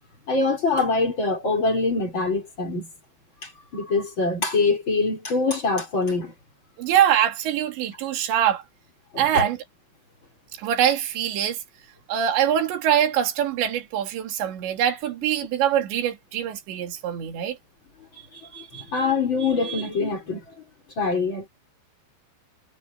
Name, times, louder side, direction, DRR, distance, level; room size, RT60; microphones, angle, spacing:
voice 1, 0.3-2.9 3.4-6.3 9.1-9.5 18.3-20.4 21.0-21.5, left 3 dB, 25° left, 4.7 m, -24 dB
voice 2, 6.8-8.6 9.2-9.6 10.6-11.6 12.1-17.6, right 10 dB, 65° right, 4.9 m, -23 dB
omnidirectional pair, 5.6 m